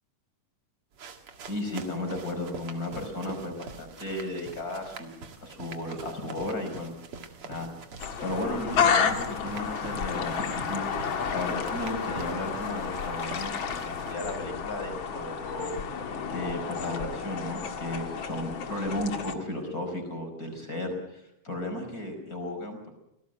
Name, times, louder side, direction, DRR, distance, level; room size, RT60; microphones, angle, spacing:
sound 1, 0.9-14.1, right 4 dB, 45° right, 2.6 m, -45 dB
voice 1, 1.5-6.9 7.4-7.7 8.2-10.8 11.3-15.7 16.3-22.9, left 1 dB, 25° left, 5 dB, 5.5 m, -34 dB
sound 2, 8.0-19.3, left 6 dB, 50° left, 1.9 m, -31 dB
26.5 x 18.5 x 7.8 m, 0.82 s
omnidirectional pair, 3.7 m